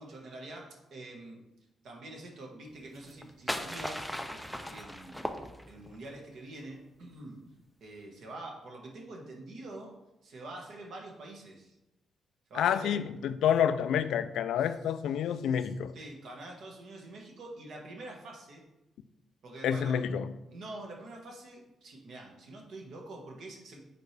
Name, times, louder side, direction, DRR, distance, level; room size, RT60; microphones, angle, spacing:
voice 1, 0.0-1.4 1.8-5.2 5.7-7.4 7.8-9.9 10.2-11.8 12.5-13.0 15.4-15.7 15.9-18.6 19.4-20.0 20.5-23.8, right 2 dB, 55° right, 0 dB, 1.4 m, -46 dB
sound 1, 3.0-6.0, equal, ahead, 0.4 m, -38 dB
voice 2, 12.5-15.9 19.6-20.3, left 9 dB, 85° left, 13 dB, 0.3 m, -28 dB
8.5 x 4.7 x 3.4 m, 0.94 s
wide cardioid pair, 180°, 0 cm